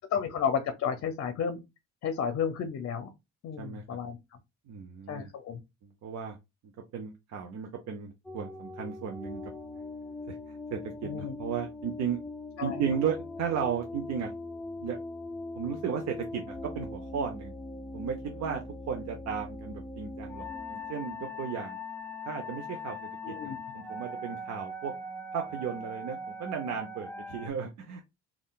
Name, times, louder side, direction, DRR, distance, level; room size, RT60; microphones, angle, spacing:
voice 1, 0.1-1.6 2.0-3.1 3.4-4.2 5.1-5.6 11.0-11.3 12.6-12.8 23.2-23.6, left 7 dB, 50° left, 9 dB, 0.6 m, -32 dB
voice 2, 4.7-5.3 5.8-6.4 6.9-9.4 10.3-12.2 12.6-14.3 14.8-15.0 15.5-17.5 17.9-21.8 22.3-23.0 23.3-24.9 25.3-28.0, right 7 dB, 60° right, 3 dB, 0.6 m, -35 dB
sound 1, 8.2-27.5, left 2 dB, 5° left, 0.3 m, -40 dB
3.6 x 2.3 x 2.3 m, 0.22 s
cardioid pair, 90°, 30 cm